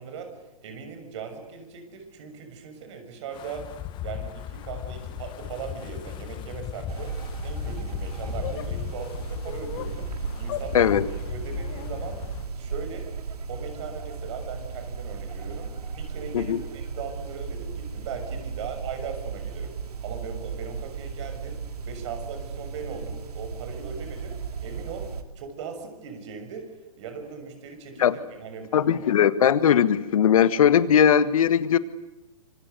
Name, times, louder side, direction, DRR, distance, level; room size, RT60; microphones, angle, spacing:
voice 1, 0.0-3.7 4.0-7.1 7.4-10.1 10.4-10.9 11.3-12.2 12.5-13.1 13.5-19.7 20.0-21.6 21.8-24.4 24.6-25.1 25.3-26.7 26.9-28.9, right 6 dB, 50° right, 6 dB, 6.7 m, -39 dB
Wind, 3.3-12.5, left 12 dB, 25° left, 1.4 m, -37 dB
sound 1, 6.9-25.2, right 5 dB, 75° right, 3.0 m, -35 dB
sound 2, 8.4-8.7 9.4-9.9 10.5-10.7 11.6-12.0, left 11 dB, 45° left, 2.3 m, -36 dB
voice 2, 10.7-11.1 16.3-16.6 28.0-28.2 28.7-31.8, left 8 dB, 65° left, 14 dB, 1.8 m, -19 dB
26.5 x 25.0 x 8.0 m, 1.0 s
hypercardioid pair, 130°, 20 cm